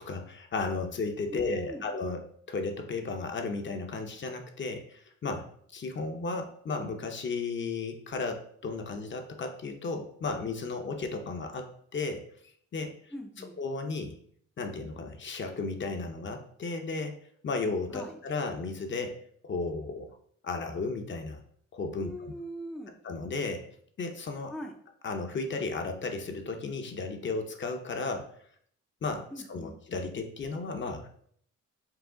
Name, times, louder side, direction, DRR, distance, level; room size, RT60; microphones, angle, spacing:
voice 1, 0.0-5.5 5.7-11.7 11.9-12.3 12.7-12.9 13.6-14.2 14.6-19.2 19.4-20.1 20.4-21.4 21.7-22.3 23.0-23.6 24.0-24.5 25.0-28.3 29.0-31.1, left 3 dB, 40° left, 5 dB, 0.7 m, -34 dB
voice 2, 1.3-1.9 13.1-13.6 17.9-18.2 22.0-23.0 24.5-24.7 29.3-29.7, equal, ahead, 3 dB, 0.4 m, -41 dB
4.7 x 2.4 x 3.7 m, 0.63 s
cardioid pair, 90°, 30 cm